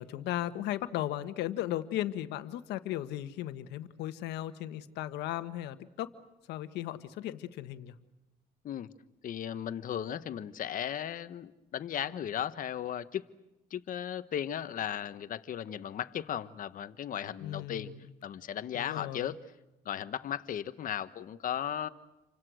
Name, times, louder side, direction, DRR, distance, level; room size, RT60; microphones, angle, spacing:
voice 1, 0.0-6.1 6.5-7.9 17.4-18.0 18.7-19.3, left 13 dB, 85° left, 11 dB, 1.6 m, -36 dB
voice 2, 9.2-13.3 13.7-17.9 18.2-19.4 19.8-21.9, left 10 dB, 55° left, 12 dB, 1.4 m, -36 dB
29.5 x 25.5 x 6.4 m, 0.98 s
cardioid pair, 110°, 17 cm